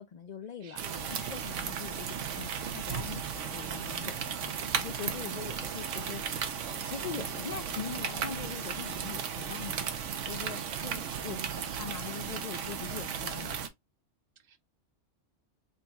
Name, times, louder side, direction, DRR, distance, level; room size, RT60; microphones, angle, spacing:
voice 1, 0.0-0.8 1.1-4.5 4.8-9.9 10.3-13.6, left 7 dB, 70° left, 0.4 m, -42 dB
voice 2, 0.6-1.2 5.2-5.7 11.3-11.7 14.4-14.6, right 7 dB, 50° right, 0.8 m, -49 dB
sound 1, 0.8-13.7, right 7 dB, 85° right, 1.1 m, -35 dB
sound 2, 3.5-4.5 5.1-7.7 8.0-9.1 9.3-9.4 9.7-10.1, left 2 dB, 25° left, 0.6 m, -51 dB
3.9 x 2.2 x 3.9 m
omnidirectional pair, 1.2 m